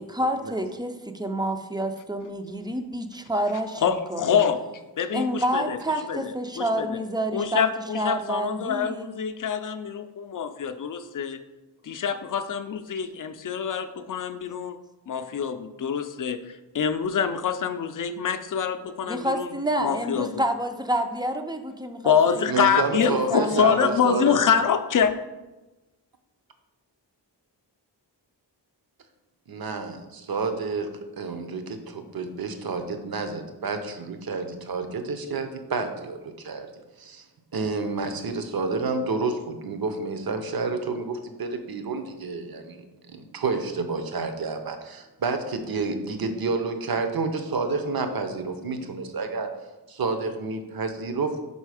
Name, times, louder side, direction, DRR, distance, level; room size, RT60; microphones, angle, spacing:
voice 1, 0.0-4.5 5.1-7.7 7.9-9.1 19.1-22.5 23.0-24.5, right 1 dB, 10° right, 6 dB, 0.4 m, -29 dB
voice 2, 3.8-4.6 5.0-5.8 6.1-7.0 7.3-11.4 11.8-14.8 15.1-19.5 19.8-20.4 22.0-25.1, left 7 dB, 50° left, 9 dB, 0.5 m, -25 dB
voice 3, 22.5-24.5 29.5-36.7 37.0-37.2 37.5-42.8 43.1-49.5 49.9-51.4, right 4 dB, 55° right, 7 dB, 0.7 m, -29 dB
5.5 x 4.1 x 4.8 m, 1.1 s
wide cardioid pair, 115°, 43 cm